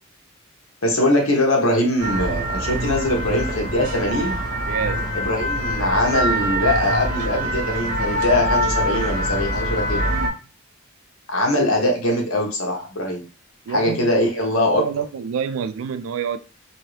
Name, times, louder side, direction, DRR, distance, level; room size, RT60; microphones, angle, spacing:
voice 1, 0.8-4.4 5.1-10.0 11.3-13.2 13.7-14.8, left 1 dB, 85° left, 1.0 m, -21 dB
sound 1, 2.0-10.3, right 1 dB, 40° right, 0.7 m, -24 dB
voice 2, 4.7-5.1 10.1-10.4 13.7-14.1 14.7-16.4, right 6 dB, 80° right, 0.3 m, -28 dB
2.9 x 2.7 x 3.1 m
head